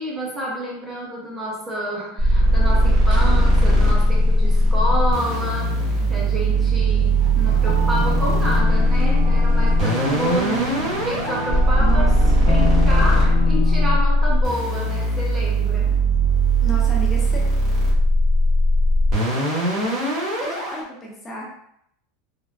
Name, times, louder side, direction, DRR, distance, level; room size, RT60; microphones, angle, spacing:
voice 1, 0.0-16.0 19.8-20.0, equal, 20° right, -3 dB, 0.6 m, -29 dB
sound 1, 2.2-20.8, equal, 35° right, 1.3 m, -18 dB
sound 2, 3.1-13.7, right 3 dB, 75° right, 0.8 m, -35 dB
sound 3, 7.4-14.0, left 5 dB, 75° left, 0.8 m, -29 dB
voice 2, 16.6-17.4 20.4-21.5, right 1 dB, 20° left, -3 dB, 0.7 m, -31 dB
3.4 x 2.1 x 2.3 m, 0.74 s
supercardioid pair, 145°, 0 cm